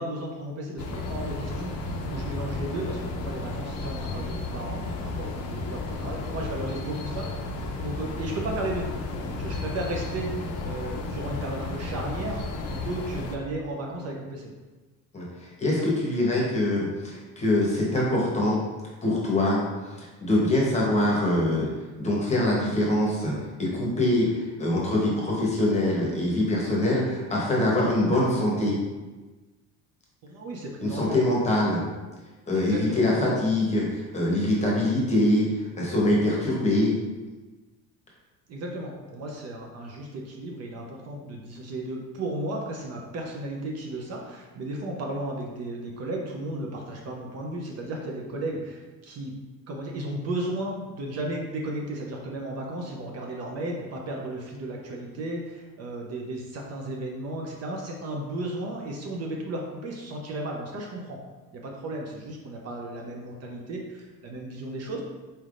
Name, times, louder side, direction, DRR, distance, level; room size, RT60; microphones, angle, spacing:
voice 1, 0.0-12.4 12.7-14.5 30.2-31.2 32.5-33.4 38.5-49.3 49.7-61.2 61.5-65.0, right 1 dB, 50° right, 0 dB, 0.6 m, -34 dB
sound 1, 0.8-13.4, left 3 dB, 45° left, 0.5 m, -33 dB
voice 2, 15.1-18.6 19.0-21.7 22.0-28.7 30.8-31.8 32.5-35.5 35.8-36.9, left 1 dB, 20° left, -4 dB, 0.9 m, -24 dB
4.2 x 3.3 x 2.5 m, 1.2 s
cardioid pair, 140°, 34 cm